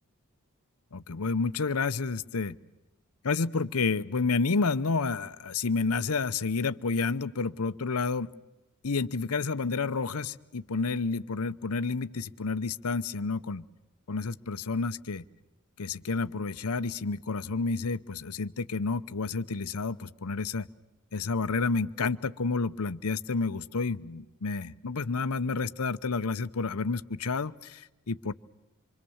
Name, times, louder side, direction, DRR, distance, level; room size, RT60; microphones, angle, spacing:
voice 1, 0.9-2.6 3.2-8.3 8.8-13.7 14.1-15.2 15.8-20.7 21.1-28.3, left 4 dB, 75° left, 14 dB, 0.8 m, -30 dB
26.5 x 24.0 x 7.2 m, 1.0 s
head